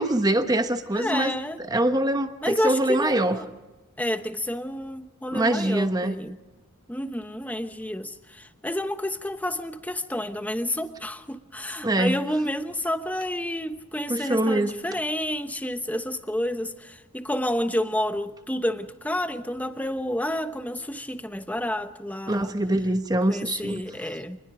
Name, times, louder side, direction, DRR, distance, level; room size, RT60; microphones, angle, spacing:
voice 1, 0.0-3.4 5.3-6.1 11.8-12.2 14.1-14.7 22.3-23.8, right 1 dB, 20° right, 8 dB, 1.1 m, -24 dB
voice 2, 0.9-1.6 2.4-3.5 4.0-6.4 6.9-22.5 23.3-24.4, left 1 dB, 5° left, 9 dB, 1.0 m, -30 dB
26.0 x 20.5 x 5.0 m, 1.1 s
head